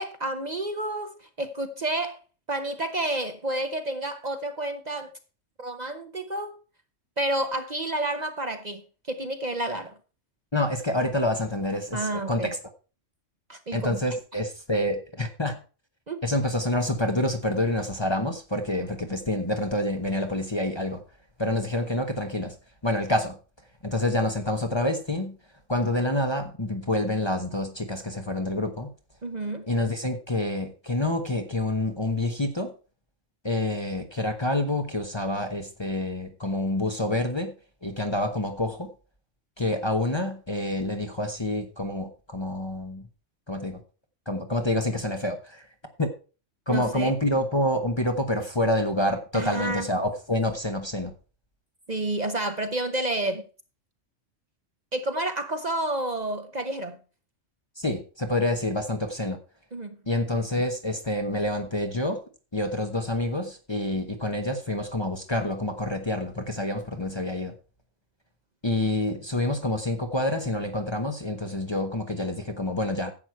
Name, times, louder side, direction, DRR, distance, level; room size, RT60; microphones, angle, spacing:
voice 1, 0.0-2.2 2.5-5.1 5.6-6.6 7.2-8.8 9.1-9.9 11.9-12.5 13.5-14.0 16.1-16.2 29.2-29.7 46.7-47.1 49.3-49.9 51.9-53.4 54.9-57.0 59.7-60.0, right 1 dB, 35° right, 1.0 m, -30 dB
voice 2, 10.5-12.6 13.7-15.6 16.2-21.0 21.4-22.5 22.8-23.4 23.8-25.4 25.7-28.9 29.7-32.7 33.4-37.5 37.8-38.9 39.6-43.1 43.5-43.8 44.3-45.7 46.0-46.1 46.7-51.1 57.8-59.4 60.1-62.2 62.5-67.5 68.6-73.1, left 1 dB, 25° left, 1.0 m, -27 dB
11.0 x 8.0 x 4.5 m
omnidirectional pair, 1.3 m